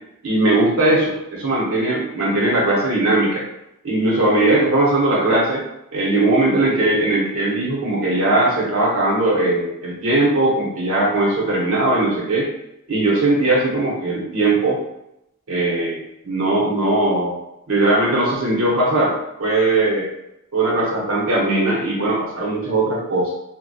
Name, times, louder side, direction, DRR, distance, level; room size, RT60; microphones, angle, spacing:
voice 1, 0.2-3.5 3.8-5.6 5.9-12.5 12.9-14.8 15.5-17.3 17.7-20.1 20.5-23.3, right 2 dB, 70° right, -3 dB, 0.7 m, -19 dB
2.7 x 2.1 x 2.2 m, 0.84 s
head